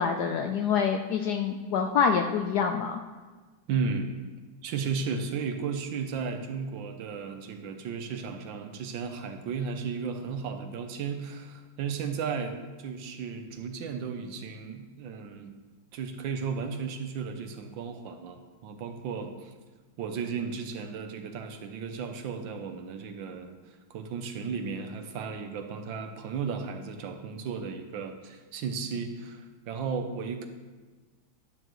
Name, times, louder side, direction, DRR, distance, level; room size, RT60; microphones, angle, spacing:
voice 1, 0.0-3.0, left 6 dB, 75° left, 5 dB, 0.9 m, -26 dB
voice 2, 3.7-4.2 4.6-15.5 15.9-19.5 20.0-23.5 23.9-30.5, right 5 dB, 75° right, 6 dB, 1.5 m, -34 dB
11.5 x 8.8 x 3.1 m, 1.3 s
omnidirectional pair, 2.2 m